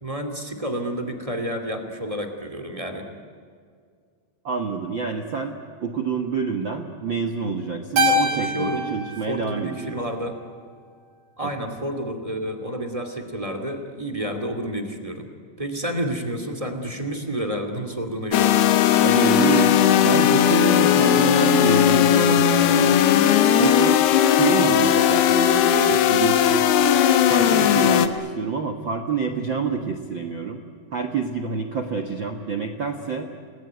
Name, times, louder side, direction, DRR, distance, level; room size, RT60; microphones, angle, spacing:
voice 1, 0.0-3.1 8.3-8.8 9.3-10.4 11.4-15.3 15.6-18.6 27.4-27.7, right 1 dB, 15° right, 5 dB, 1.5 m, -30 dB
voice 2, 4.4-9.9 11.4-11.5 19.0-23.0 23.5-26.7 27.3-30.6 30.9-33.3, right 6 dB, 70° right, 5 dB, 1.1 m, -27 dB
Keyboard (musical), 8.0-10.5, left 1 dB, 50° right, 3.1 m, -25 dB
sound 1, 18.3-28.1, left 9 dB, 90° left, 3.2 m, -17 dB
29.0 x 19.5 x 9.4 m, 2.1 s
omnidirectional pair, 4.4 m